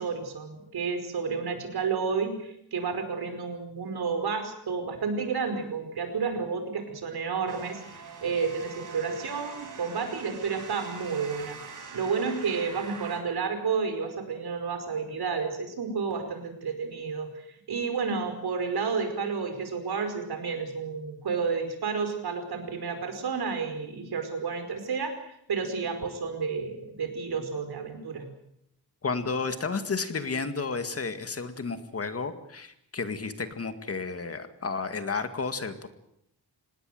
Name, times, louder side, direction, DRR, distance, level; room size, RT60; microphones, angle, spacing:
voice 1, 0.0-11.6 11.9-17.3 17.7-28.3, right 5 dB, 70° right, 7 dB, 5.2 m, -31 dB
sound 1, 7.5-13.2, right 4 dB, 50° right, 5.8 m, -43 dB
voice 2, 29.0-35.9, left 4 dB, 35° left, 9 dB, 2.0 m, -32 dB
26.5 x 19.5 x 7.9 m, 0.75 s
wide cardioid pair, 155°, 40 cm